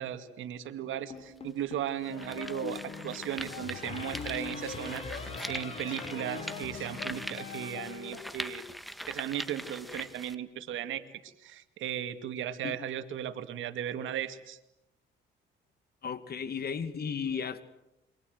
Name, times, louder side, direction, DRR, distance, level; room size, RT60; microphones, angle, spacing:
voice 1, 0.0-8.6 9.1-14.6, right 10 dB, 80° right, 10 dB, 2.4 m, -36 dB
sound 1, 1.1-2.0 3.8-7.6, left 3 dB, 30° left, 4.5 m, -44 dB
sound 2, 1.1-1.2 1.9-10.3, equal, ahead, 1.8 m, -42 dB
sound 3, 2.0-8.2, left 7 dB, 80° left, 5.5 m, -43 dB
voice 2, 16.0-17.6, left 6 dB, 50° left, 13 dB, 2.4 m, -34 dB
28.5 x 24.5 x 8.0 m, 0.89 s
cardioid pair, 90°, 20 cm